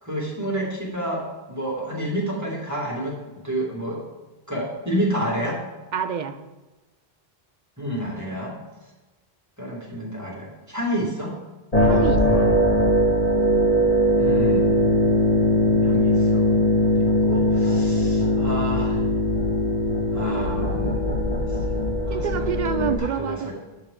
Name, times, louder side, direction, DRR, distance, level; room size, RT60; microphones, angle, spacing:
voice 1, 0.0-3.2 3.4-4.0 4.5-5.6 7.8-8.5 9.6-11.3 14.2-14.7 15.8-16.5 17.0-19.0 20.1-21.0 22.1-23.5, right 1 dB, 15° right, -3 dB, 2.0 m, -29 dB
voice 2, 5.9-6.4 11.8-12.5 22.1-23.5, right 7 dB, 55° right, 9 dB, 0.7 m, -27 dB
sound 1, 11.7-23.0, left 1 dB, 40° left, 1.3 m, -20 dB
10.5 x 7.9 x 3.7 m, 1.2 s
omnidirectional pair, 1.0 m